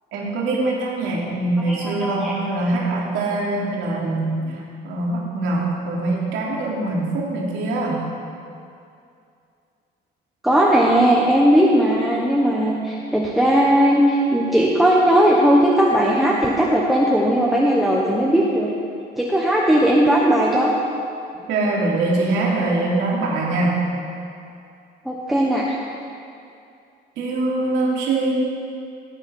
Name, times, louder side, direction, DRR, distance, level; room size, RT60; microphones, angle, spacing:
voice 1, 0.1-8.0 21.5-23.8 27.2-28.3, right 2 dB, 85° right, -4 dB, 3.2 m, -23 dB
voice 2, 1.7-2.3 10.4-18.7 19.2-20.7 25.0-25.8, equal, ahead, -4 dB, 1.1 m, -17 dB
17.5 x 9.0 x 5.4 m, 2.5 s
cardioid pair, 160°, 19 cm